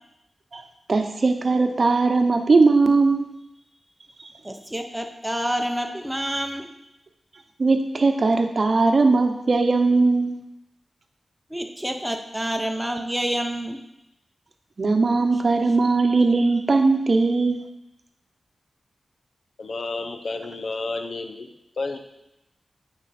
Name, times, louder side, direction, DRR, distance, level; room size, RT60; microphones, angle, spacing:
voice 1, 0.9-3.3 7.6-10.3 14.8-17.6, right 3 dB, 60° right, 6 dB, 0.9 m, -19 dB
voice 2, 4.4-6.7 11.5-13.8, equal, 10° right, 3 dB, 0.9 m, -28 dB
voice 3, 19.6-21.5 21.8-22.0, left 3 dB, 70° left, 7 dB, 0.7 m, -30 dB
8.7 x 4.8 x 4.3 m, 0.87 s
cardioid pair, 55°, 0 cm